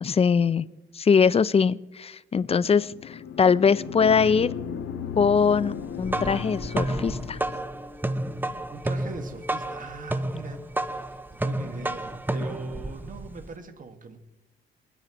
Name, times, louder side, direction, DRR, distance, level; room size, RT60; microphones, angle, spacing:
voice 1, 0.0-0.7 0.9-4.5 5.2-7.4, left 6 dB, 30° left, 18 dB, 0.5 m, -22 dB
sound 1, 2.8-7.8, left 7 dB, 85° left, 1.4 m, -35 dB
sound 2, 5.0-11.2, left 2 dB, 10° left, 1.2 m, -48 dB
sound 3, 5.8-13.5, right 1 dB, 10° right, 0.6 m, -31 dB
voice 2, 8.7-14.2, right 4 dB, 40° right, 7 dB, 1.7 m, -41 dB
29.5 x 10.0 x 3.0 m, 0.99 s
cardioid pair, 90°, 20 cm